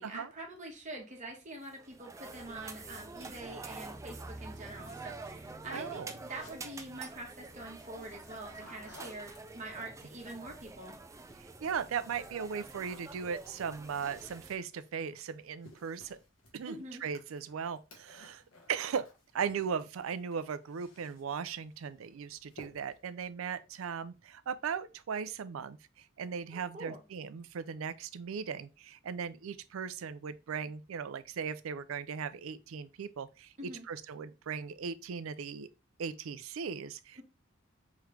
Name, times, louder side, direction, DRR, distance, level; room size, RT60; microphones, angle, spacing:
voice 1, 0.0-11.0 16.7-17.0 26.5-27.0 33.6-33.9 37.2-37.3, right 2 dB, 35° right, 1.2 m, -45 dB
sound 1, 1.6-14.5, right 3 dB, 15° right, 0.3 m, -47 dB
sound 2, 3.9-9.9 11.1-11.5 11.8-19.7 20.0-21.5 21.8-22.1 22.5-23.1, left 1 dB, 80° left, 1.4 m, -58 dB
voice 2, 5.7-6.1 11.4-16.2 16.5-18.4 18.7-19.1 19.3-35.7 36.0-37.2, right 6 dB, 85° right, 0.4 m, -38 dB
3.6 x 3.3 x 3.1 m
head